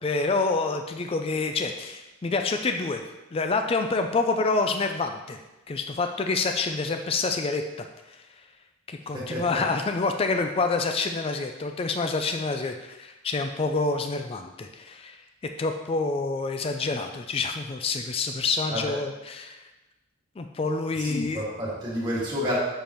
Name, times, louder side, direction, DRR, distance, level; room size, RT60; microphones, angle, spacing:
voice 1, 0.0-3.0 3.3-5.4 5.7-8.2 8.9-15.2 15.6-19.1 19.4-19.6 20.4-21.4, left 3 dB, 25° left, 6 dB, 0.3 m, -27 dB
voice 2, 9.1-9.6 18.7-19.0 21.0-22.6, equal, 20° right, -7 dB, 1.9 m, -30 dB
6.6 x 5.2 x 3.0 m, 1.0 s
head